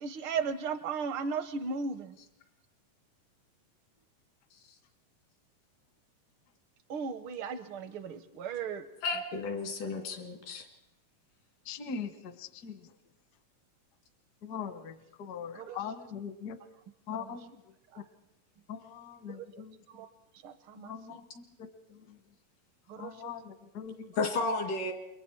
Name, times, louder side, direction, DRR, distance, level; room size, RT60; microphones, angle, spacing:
voice 1, 0.0-2.1 6.9-8.8 15.6-15.8 19.9-20.1 20.4-20.9 22.9-23.1, right 5 dB, 70° right, 11 dB, 1.3 m, -35 dB
voice 2, 9.0-10.7 24.2-24.9, left 3 dB, 90° left, 4 dB, 4.1 m, -32 dB
voice 3, 11.6-12.9 14.4-16.6 17.1-17.5 17.9-18.0 18.7-19.8 20.8-22.2 23.0-24.1, left 7 dB, 65° left, 10 dB, 0.9 m, -42 dB
28.5 x 23.0 x 4.6 m, 0.90 s
omnidirectional pair, 3.7 m